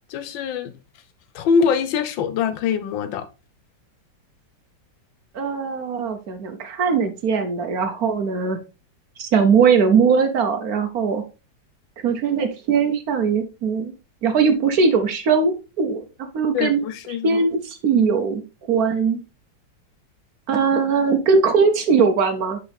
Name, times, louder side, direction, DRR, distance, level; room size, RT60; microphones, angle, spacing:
voice 1, 0.1-0.7 1.3-3.3 16.5-17.4, left 6 dB, 85° left, 1.5 m, -23 dB
voice 2, 5.3-8.6 9.2-11.2 12.0-13.9 14.2-16.0 16.3-16.8 17.2-18.4 18.7-19.2 20.5-22.6, right 5 dB, 60° right, 1.2 m, -20 dB
6.5 x 4.9 x 3.5 m
omnidirectional pair, 2.0 m